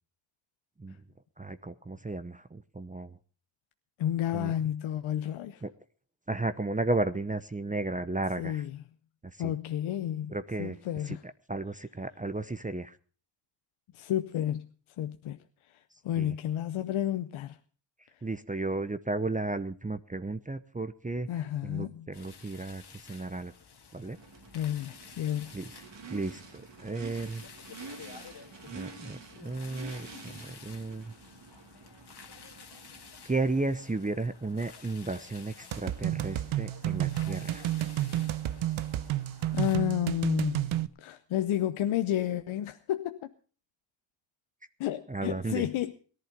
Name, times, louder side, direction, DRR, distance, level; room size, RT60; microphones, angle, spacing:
voice 1, 1.4-3.2 4.3-4.5 5.6-5.7 6.3-8.6 9.2-9.5 10.3-10.8 11.1-11.2 11.5-13.0 16.2-16.3 18.2-21.3 21.6-23.5 23.9-24.2 25.5-25.7 26.1-27.4 28.7-31.1 33.2-37.7 45.1-45.7, right 2 dB, 15° right, 0.9 m, -34 dB
voice 2, 4.0-5.6 8.4-8.8 9.4-11.2 13.9-14.7 15.0-17.6 18.1-18.2 21.3-22.1 24.5-25.5 39.5-43.2 44.8-45.9, left 11 dB, 85° left, 0.8 m, -31 dB
sound 1, 22.1-39.8, left 6 dB, 55° left, 2.0 m, -52 dB
Race car auto racing / Idling / Accelerating revving vroom, 24.1-33.6, right 4 dB, 65° right, 2.7 m, -48 dB
sound 2, 35.7-40.9, right 13 dB, 85° right, 0.7 m, -31 dB
18.0 x 11.0 x 5.2 m
supercardioid pair, 50°, 47 cm